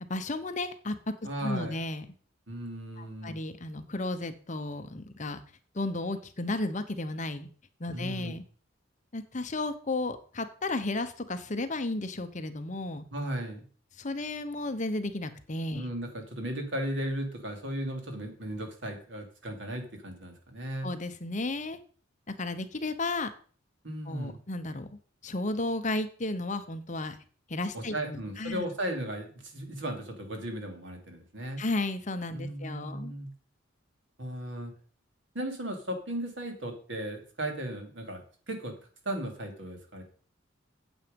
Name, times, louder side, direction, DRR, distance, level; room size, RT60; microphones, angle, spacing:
voice 1, 0.1-0.9 1.4-2.0 3.0-5.4 5.7-7.5 7.8-8.4 9.1-13.0 14.0-15.9 20.8-21.8 22.4-23.3 24.1-27.2 27.5-28.7 31.6-33.1, left 2 dB, 35° left, 10 dB, 0.9 m, -33 dB
voice 2, 1.2-1.7 2.5-3.4 7.9-8.4 13.1-13.7 15.7-20.9 23.8-24.4 27.7-31.6 32.3-33.3 34.2-34.7 35.3-38.2 38.5-38.7 39.0-40.0, right 1 dB, 60° right, 4 dB, 2.7 m, -36 dB
8.9 x 8.1 x 5.2 m, 0.42 s
head